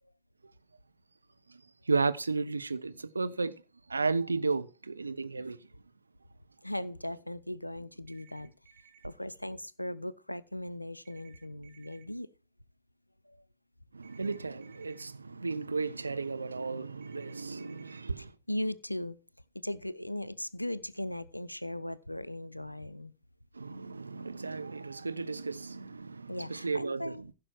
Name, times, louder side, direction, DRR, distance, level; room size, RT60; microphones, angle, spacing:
voice 1, 1.9-3.6 3.9-5.6 13.9-18.3 23.5-27.2, right 4 dB, 80° right, 0.6 m, -33 dB
voice 2, 6.6-8.5 9.0-12.3 13.3-13.4 18.2-19.2 19.6-23.1 26.3-27.2, left 1 dB, 90° left, 0.5 m, -38 dB
sound 1, 8.1-9.1 11.0-12.0 14.0-15.0 17.0-18.0, right 7 dB, 50° right, 1.7 m, -60 dB
15.0 x 5.9 x 4.5 m
figure-of-eight pair, 90°, 0 cm